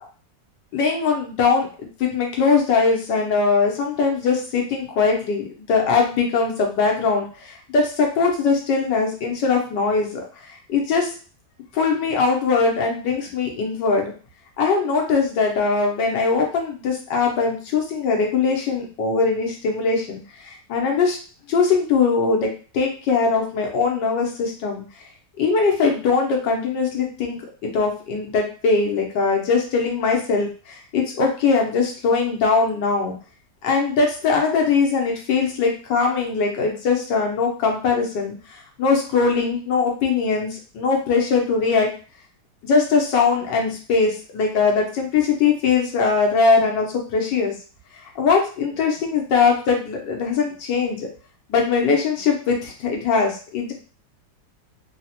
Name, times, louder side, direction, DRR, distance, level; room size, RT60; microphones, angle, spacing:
voice 1, 0.7-1.7 2.0-10.2 10.7-11.1 11.7-14.1 14.6-21.2 21.5-22.5 22.7-24.8 25.4-33.2 33.6-38.3 38.8-41.9 42.6-47.5 48.2-51.1 51.5-53.7, left 4 dB, 90° left, 1 dB, 1.5 m, -21 dB
3.9 x 2.1 x 2.8 m, 0.38 s
omnidirectional pair, 1.9 m